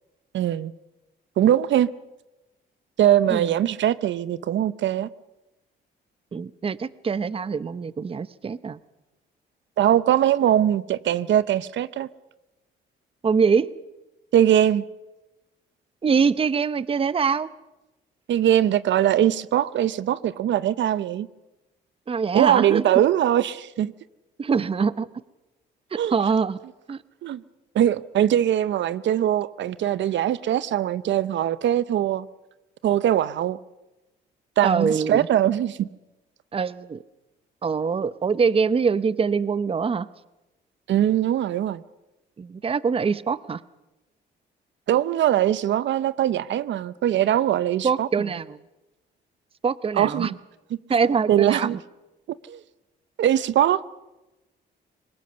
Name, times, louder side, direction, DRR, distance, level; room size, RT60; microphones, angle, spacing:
voice 1, 0.3-0.7 1.4-1.9 3.0-5.1 9.8-12.1 14.3-14.8 18.3-21.3 22.3-23.9 26.0-26.1 27.2-27.4 27.7-32.3 32.8-33.6 34.6-35.9 40.9-41.8 44.9-48.1 50.0-50.3 51.3-51.8 52.5-52.6 53.2-53.8, right 11 dB, 70° right, 0.7 m, -21 dB
voice 2, 6.3-8.8 13.2-13.7 16.0-17.5 22.1-22.8 24.4-25.1 25.9-26.6 26.9-27.0 34.6-35.3 36.5-37.0 37.6-40.1 42.4-43.6 47.8-48.6 49.6-50.3 50.9-51.8, right 5 dB, 30° right, 0.7 m, -24 dB
23.0 x 20.5 x 6.8 m
cardioid pair, 90°, 20 cm